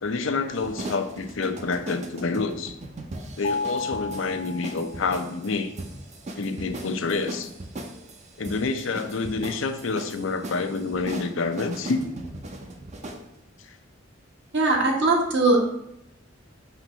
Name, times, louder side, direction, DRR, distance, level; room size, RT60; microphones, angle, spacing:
voice 1, 0.0-2.8 3.4-5.7 6.4-7.5 8.4-12.0 13.6-13.7, left 4 dB, 85° left, 8 dB, 0.6 m, -28 dB
sound 1, 0.6-13.3, right 1 dB, 35° right, 0.6 m, -39 dB
Mallet percussion, 3.4-5.4, left 4 dB, 45° left, 0.7 m, -32 dB
voice 2, 14.5-15.6, right 2 dB, 65° right, -1 dB, 1.4 m, -20 dB
5.7 x 3.0 x 5.6 m, 0.79 s
head